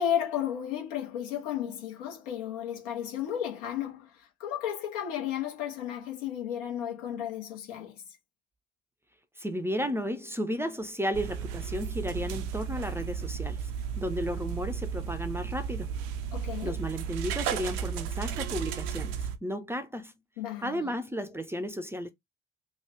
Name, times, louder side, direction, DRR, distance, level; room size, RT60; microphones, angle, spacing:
voice 1, 0.0-8.0 16.3-16.8 20.4-20.9, left 10 dB, 75° left, 1.1 m, -33 dB
voice 2, 9.4-13.6 14.0-15.9 16.6-19.1 19.4-20.1 20.6-22.1, equal, 10° right, 0.6 m, -33 dB
sound 1, 11.1-19.4, right 7 dB, 65° right, 0.5 m, -34 dB
3.1 x 2.2 x 3.4 m
figure-of-eight pair, 45°, 29 cm